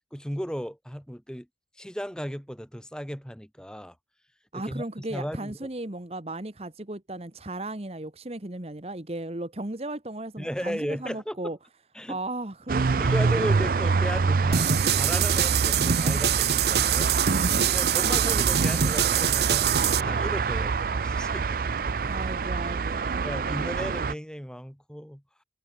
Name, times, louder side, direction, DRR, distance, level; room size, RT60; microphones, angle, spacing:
voice 1, 0.1-1.5 1.7-4.0 4.5-4.8 5.1-5.7 10.4-11.5 11.9-12.2 13.0-21.6 21.9-22.0 23.2-25.2, equal, 5° left, 6.2 m, -35 dB
voice 2, 4.5-11.6 12.1-13.7 22.0-23.2, right 2 dB, 35° right, 1.3 m, -36 dB
sound 1, 12.7-24.1, right 4 dB, 50° right, 0.4 m, -26 dB
sound 2, 14.5-20.0, right 8 dB, 70° right, 1.1 m, -24 dB
head